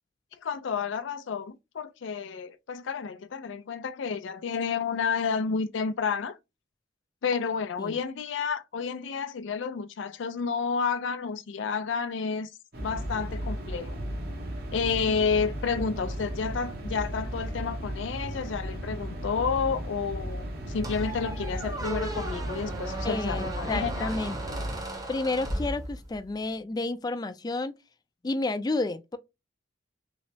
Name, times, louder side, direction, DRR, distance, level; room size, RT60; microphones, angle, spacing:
voice 1, 0.4-6.4 7.2-12.5 12.8-14.0 14.7-24.1, left 5 dB, 85° left, 0.4 m, -30 dB
sound 1, 12.7-24.8, equal, 55° right, 1.1 m, -35 dB
Squeak, 20.8-26.3, right 1 dB, 20° right, 0.8 m, -36 dB
voice 2, 23.0-24.6 25.1-27.7 28.2-29.2, left 2 dB, 20° left, 0.3 m, -31 dB
3.1 x 3.1 x 2.7 m
head